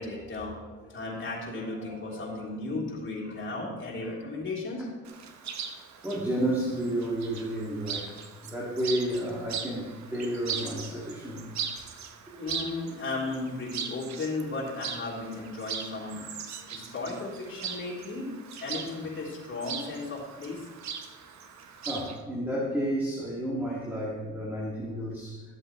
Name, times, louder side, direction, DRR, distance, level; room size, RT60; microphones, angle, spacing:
voice 1, 0.0-4.9 11.1-11.2 12.4-16.2 16.7-18.3 18.6-20.7, left 3 dB, 40° left, -4 dB, 3.4 m, -35 dB
Chirp tweet, 5.0-22.2, right 6 dB, 65° right, 1.1 m, -40 dB
voice 2, 6.0-8.2 8.4-11.5 12.3-12.4 21.9-25.4, right 1 dB, 5° right, -5 dB, 2.1 m, -31 dB
14.0 x 7.7 x 3.1 m, 1.3 s
cardioid pair, 90°, 30 cm